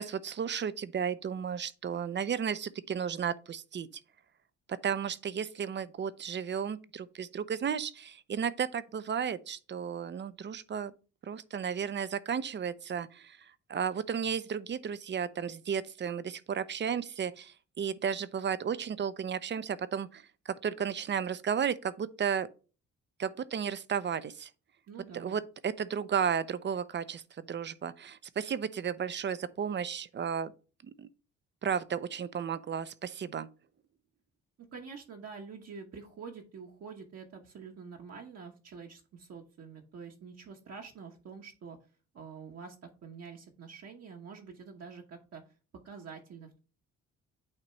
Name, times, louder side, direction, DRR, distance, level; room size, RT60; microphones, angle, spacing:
voice 1, 0.0-3.9 4.7-10.9 11.2-13.4 13.7-22.5 23.2-24.5 25.1-30.5 30.8-31.1 31.6-33.5, right 7 dB, 35° right, 0.5 m, -33 dB
voice 2, 24.9-25.4 34.7-41.8 42.1-45.4 45.8-46.6, right 5 dB, 55° right, 1.1 m, -47 dB
8.8 x 3.0 x 4.4 m
cardioid pair, 90°, 30 cm